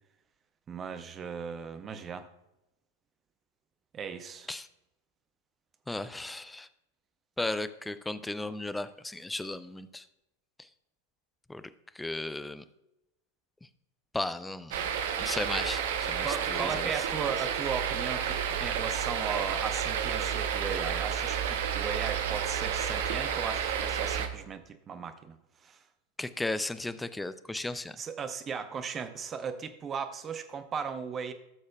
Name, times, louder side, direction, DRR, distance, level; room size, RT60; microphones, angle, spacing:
voice 1, 0.7-2.3 3.9-4.5 16.2-25.4 25.6-25.8 28.0-31.3, right 6 dB, 25° right, 9 dB, 0.7 m, -37 dB
voice 2, 5.9-6.7 7.4-10.0 11.5-11.6 11.9-12.6 14.1-16.9 26.2-28.0, left 2 dB, 5° left, 13 dB, 0.4 m, -35 dB
sound 1, 14.7-24.3, right 8 dB, 55° right, 0.8 m, -31 dB
16.0 x 6.4 x 2.3 m, 0.91 s
figure-of-eight pair, 90°, 0 cm